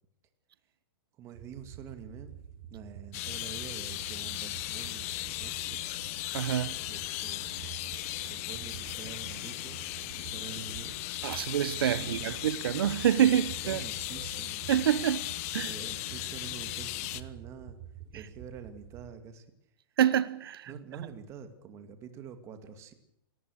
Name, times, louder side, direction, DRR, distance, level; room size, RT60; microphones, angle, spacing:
voice 1, 1.2-2.4 2.7-6.0 6.8-7.6 8.3-11.0 11.9-12.3 13.1-14.6 15.6-17.8 18.1-19.5 20.7-22.9, right 7 dB, 20° right, 2.3 m, -46 dB
sound 1, 1.3-19.1, right 9 dB, 40° right, 7.1 m, -48 dB
sound 2, 3.1-17.2, left 17 dB, 35° left, 1.1 m, -37 dB
voice 2, 6.3-6.8 7.9-8.3 11.2-13.8 14.7-15.3 15.5-15.7 18.1-18.2 20.0-20.7, right 10 dB, 70° right, 1.0 m, -27 dB
27.0 x 18.5 x 6.5 m
hypercardioid pair, 160°, 13 cm